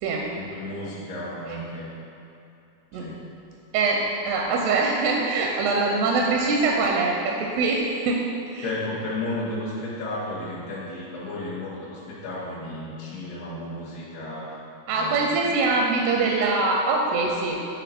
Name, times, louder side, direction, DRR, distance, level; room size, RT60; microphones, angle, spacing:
voice 1, 0.3-1.9 2.9-3.3 8.6-14.6 14.9-15.6, left 1 dB, 80° left, -7 dB, 3.0 m, -33 dB
voice 2, 3.7-8.2 8.5-8.7 14.9-17.6, right 3 dB, 85° right, 0 dB, 2.6 m, -23 dB
10.0 x 3.9 x 4.2 m, 2.9 s
omnidirectional pair, 4.5 m